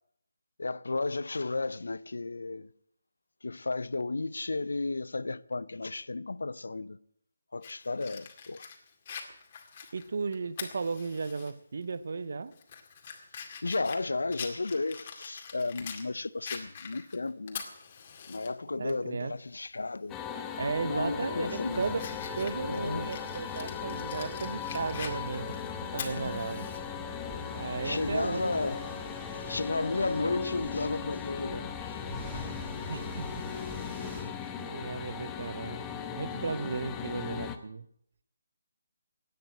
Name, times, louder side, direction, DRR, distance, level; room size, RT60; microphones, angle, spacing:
voice 1, 0.6-2.7 3.4-7.0 7.5-8.7 13.6-17.6 18.3-20.2 20.8-21.9 22.5-23.1 27.8-29.0 29.3-32.0, left 3 dB, 85° left, 0.5 m, -33 dB
Fire, 7.6-11.5 11.9-12.0 12.5-16.1 16.4-18.5 18.9-19.0 20.5-20.7 21.2-26.8, left 6 dB, 35° left, 2.1 m, -44 dB
voice 2, 9.9-12.5 18.8-19.3 20.6-26.7 27.5-28.7 32.9-33.3 34.0-34.2 34.6-35.8 36.2-37.9, right 4 dB, 60° right, 0.7 m, -35 dB
sound 1, 20.1-37.6, left 8 dB, 15° left, 0.9 m, -38 dB
sound 2, 21.7-34.2, equal, 10° right, 4.1 m, -45 dB
16.5 x 9.3 x 7.6 m
hypercardioid pair, 160°, 0 cm